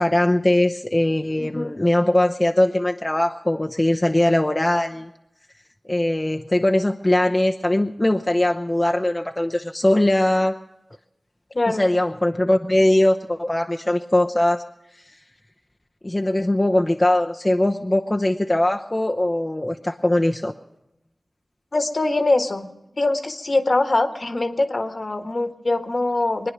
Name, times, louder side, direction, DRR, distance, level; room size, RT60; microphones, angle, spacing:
voice 1, 0.0-5.1 5.9-10.6 11.7-14.6 16.0-20.5, left 1 dB, 25° left, 3 dB, 0.8 m, -20 dB
voice 2, 1.4-1.7 11.5-11.9 21.7-22.7 23.0-26.5, left 2 dB, 55° left, 8 dB, 1.5 m, -23 dB
23.0 x 9.8 x 6.2 m, 0.92 s
cardioid pair, 40°, 0 cm